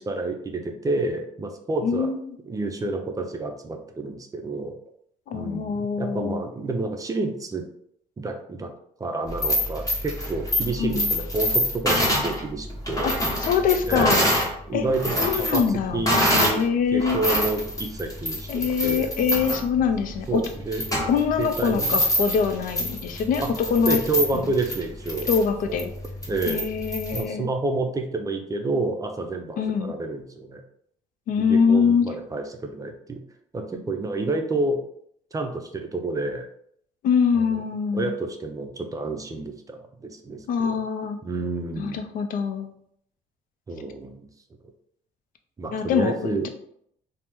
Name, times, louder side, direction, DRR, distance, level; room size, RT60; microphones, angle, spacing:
voice 1, 0.0-2.1 2.5-4.7 5.3-7.6 8.2-8.7 9.0-13.2 13.8-14.2 14.7-16.6 16.9-19.1 20.3-20.8 21.4-22.0 23.4-25.3 26.3-26.6 27.1-30.6 31.3-33.2 33.5-34.8 35.3-36.5 37.4-37.6 37.9-40.8 41.2-42.0 43.7-44.3 45.6-46.5, right 2 dB, 20° right, 4 dB, 0.4 m, -29 dB
voice 2, 1.8-2.2 5.3-6.4 10.8-11.1 13.0-13.1 13.5-14.2 14.7-14.8 15.2-16.0 16.3-17.2 18.5-20.4 21.1-23.4 23.7-24.0 25.3-25.9 26.5-27.5 29.6-29.9 31.3-32.0 37.0-38.0 40.5-41.2 41.8-42.7 45.7-46.1, left 6 dB, 60° left, 7 dB, 0.4 m, -23 dB
sound 1, 9.3-14.5 14.9-16.6 17.0-27.2, equal, 20° left, 1.2 m, -26 dB
2.8 x 2.0 x 3.4 m, 0.68 s
cardioid pair, 90°, 16 cm